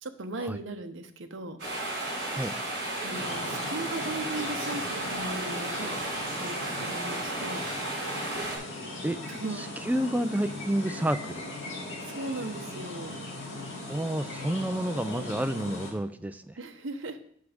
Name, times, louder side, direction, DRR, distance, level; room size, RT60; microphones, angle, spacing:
voice 1, 0.0-1.6 3.0-5.9 6.4-7.7 9.3-9.6 12.0-13.3 16.6-17.2, right 2 dB, 70° right, 7 dB, 0.8 m, -37 dB
sound 1, 1.6-8.6, right 2 dB, 55° right, 3.6 m, -33 dB
sound 2, 3.1-15.9, left 2 dB, 65° left, 2.6 m, -39 dB
voice 2, 9.5-11.4 13.9-16.6, right 1 dB, 10° right, 10 dB, 0.3 m, -30 dB
8.3 x 6.0 x 5.0 m, 0.63 s
head